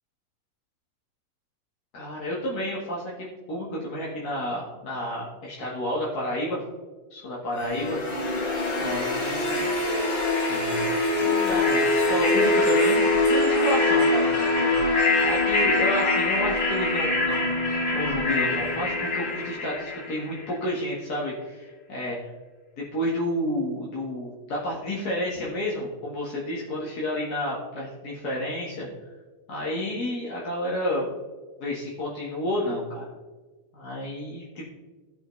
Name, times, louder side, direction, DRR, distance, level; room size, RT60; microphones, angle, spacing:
voice 1, 1.9-6.6 7.1-8.5 8.8-9.7 10.5-10.9 11.2-17.5 17.9-22.3 22.8-28.9 29.5-31.1 31.6-33.0 33.7-34.7, left 1 dB, 40° left, -5 dB, 1.4 m, -31 dB
sound 1, 7.6-20.5, left 2 dB, 85° left, 4.4 m, -23 dB
16.0 x 5.8 x 3.1 m, 1.3 s
omnidirectional pair, 3.5 m